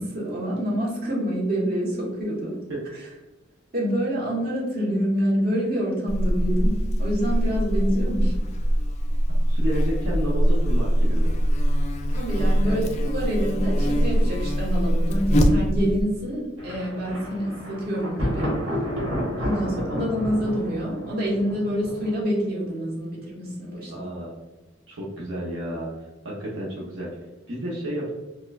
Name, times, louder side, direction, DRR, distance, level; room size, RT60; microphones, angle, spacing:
voice 1, 0.0-2.5 3.0-3.1 3.7-8.3 12.1-18.5 19.4-24.1, equal, 50° right, -5 dB, 1.2 m, -27 dB
Buzz, 6.1-16.0, equal, 35° left, 0.3 m, -22 dB
voice 2, 9.4-11.3 12.6-12.9 23.9-24.3 24.9-27.1 27.5-28.1, equal, 75° right, -6 dB, 0.7 m, -31 dB
Thunder, 16.6-22.4, equal, 90° right, 1.3 m, -31 dB
4.3 x 2.2 x 2.3 m, 1.1 s
head